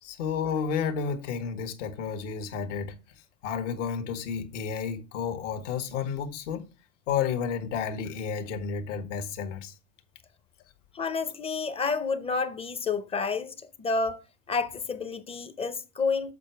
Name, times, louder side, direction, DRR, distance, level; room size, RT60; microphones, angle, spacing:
voice 1, 0.0-3.0 3.4-6.7 7.1-9.7, left 6 dB, 75° left, 1.4 m, -31 dB
voice 2, 10.9-14.2 14.5-16.3, left 4 dB, 15° left, 0.5 m, -30 dB
7.6 x 4.7 x 4.4 m
supercardioid pair, 120°, 37 cm